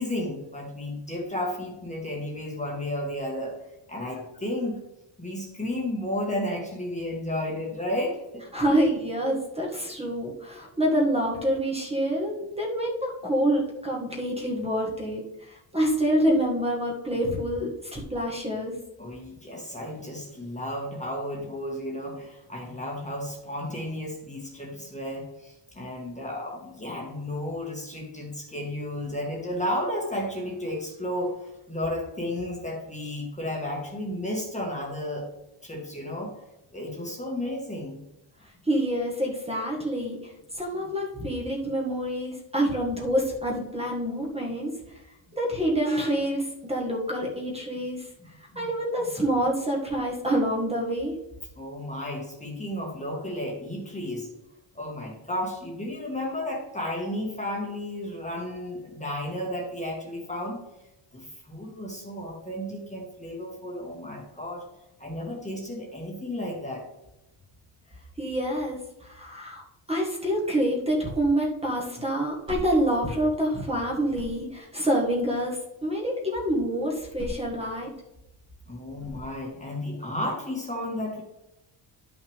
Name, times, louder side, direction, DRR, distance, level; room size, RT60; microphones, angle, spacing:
voice 1, 0.0-3.6 3.9-4.8 5.2-8.8 19.0-35.3 35.6-36.3 36.7-38.0 48.5-48.6 51.6-54.3 54.8-60.6 61.1-64.7 65.0-66.9 78.7-81.2, left 1 dB, 15° left, -2 dB, 1.7 m, -33 dB
voice 2, 8.5-18.8 38.7-40.2 40.5-44.7 45.3-48.1 48.6-51.2 68.2-69.6 69.9-77.9, equal, 10° right, -2 dB, 1.8 m, -27 dB
sound 1, 72.2-73.7 73.9-74.7 76.9-78.1 78.9-79.7, right 1 dB, 35° right, 2.2 m, -42 dB
11.5 x 5.8 x 3.6 m, 0.94 s
wide cardioid pair, 150°, 49 cm